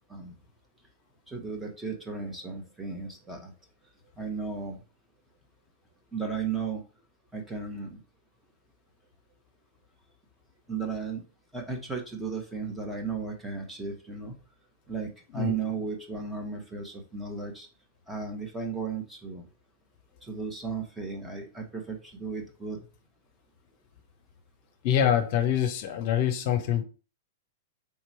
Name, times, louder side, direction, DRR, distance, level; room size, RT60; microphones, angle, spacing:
voice 1, 1.3-3.5 4.2-4.8 6.1-6.8 7.3-8.0 10.7-11.2 11.5-14.3 14.9-17.7 18.1-19.4 20.2-22.8, right 5 dB, 10° right, 1.2 m, -35 dB
voice 2, 24.8-26.8, left 9 dB, 55° left, 0.7 m, -25 dB
3.6 x 3.0 x 4.3 m
hypercardioid pair, 110°, 0 cm